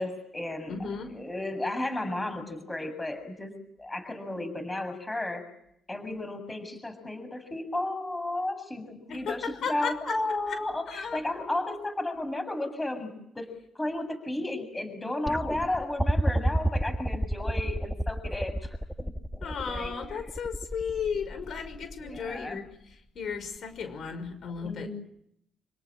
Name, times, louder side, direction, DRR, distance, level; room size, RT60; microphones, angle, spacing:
voice 1, 0.0-0.8 1.0-3.5 3.8-5.4 5.9-13.5 13.7-18.8 19.0-20.2 22.0-22.6 24.6-24.9, left 2 dB, 15° left, 9 dB, 7.4 m, -33 dB
voice 2, 0.7-1.1 9.1-10.2 10.9-11.2 19.4-22.7 23.2-24.9, left 6 dB, 65° left, 9 dB, 5.9 m, -34 dB
sound 1, 15.3-22.4 23.6-23.7, right 1 dB, ahead, 1.6 m, -30 dB
28.5 x 18.5 x 10.0 m, 0.73 s
cardioid pair, 90°, 0 cm